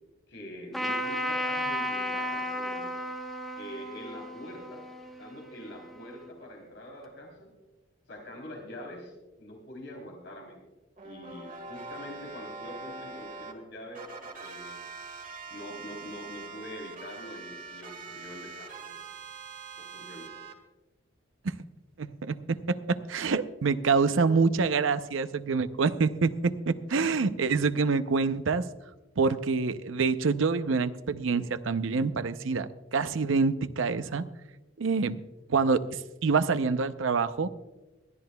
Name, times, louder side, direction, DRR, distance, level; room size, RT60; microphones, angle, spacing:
voice 1, 0.3-2.9 3.6-4.8 5.2-7.5 8.1-9.1 9.4-10.6 11.0-14.1 14.4-14.8 15.5-19.0 19.8-20.4, left 1 dB, 60° left, 1 dB, 3.3 m, -44 dB
Trumpet, 0.7-6.3, equal, ahead, 1.0 m, -34 dB
sound 1, 11.0-13.5 13.9-20.5, right 4 dB, 40° right, 1.9 m, -43 dB
voice 2, 22.0-28.6 29.2-34.2 34.8-35.2 35.5-37.5, right 4 dB, 80° right, 12 dB, 0.6 m, -26 dB
21.5 x 12.5 x 2.2 m, 1.1 s
head